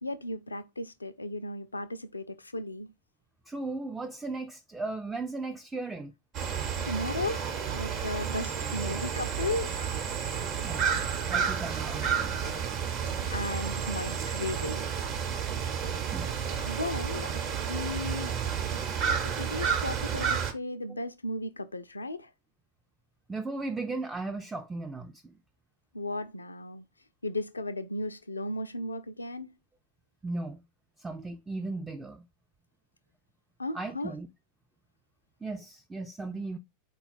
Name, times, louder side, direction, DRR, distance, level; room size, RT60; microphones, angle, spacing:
voice 1, 0.0-2.9 6.9-10.0 10.7-11.0 13.3-14.8 16.4-17.3 17.7-18.3 19.2-22.3 25.9-26.9 27.2-29.6 33.6-34.1, left 2 dB, 80° left, 0.3 m, -35 dB
voice 2, 3.5-6.1 10.6-11.0 11.3-12.5 16.1-16.3 20.9-21.0 23.3-25.4 30.2-30.6 31.0-32.3 33.7-34.3 35.4-36.6, right 3 dB, 10° right, 0.4 m, -36 dB
sound 1, 6.3-20.5, right 7 dB, 35° right, 0.9 m, -31 dB
4.1 x 2.2 x 4.0 m
figure-of-eight pair, 90°, 0 cm